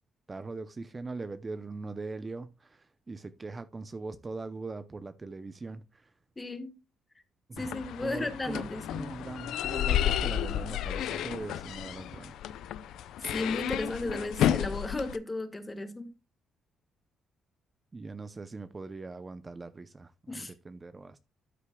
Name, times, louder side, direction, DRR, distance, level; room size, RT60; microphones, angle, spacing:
voice 1, 0.3-6.1 7.5-7.7 8.0-12.4 17.9-21.2, right 3 dB, 25° right, 0.6 m, -41 dB
voice 2, 6.4-6.7 7.6-9.1 13.2-16.1 20.3-20.5, left 2 dB, 20° left, 1.5 m, -34 dB
sound 1, 7.6-15.2, left 11 dB, 80° left, 0.4 m, -32 dB
12.5 x 6.6 x 2.2 m
cardioid pair, 90°, 0 cm